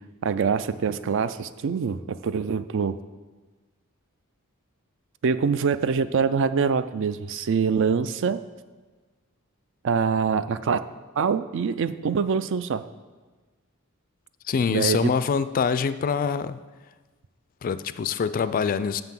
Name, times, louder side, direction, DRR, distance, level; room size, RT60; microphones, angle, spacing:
voice 1, 0.2-3.0 5.2-8.4 9.8-10.8 11.2-12.8 14.7-15.1, right 6 dB, 60° right, 14 dB, 0.4 m, -24 dB
voice 2, 14.5-16.6 17.6-19.0, left 6 dB, 40° left, 14 dB, 0.3 m, -25 dB
6.9 x 5.8 x 7.4 m, 1.3 s
head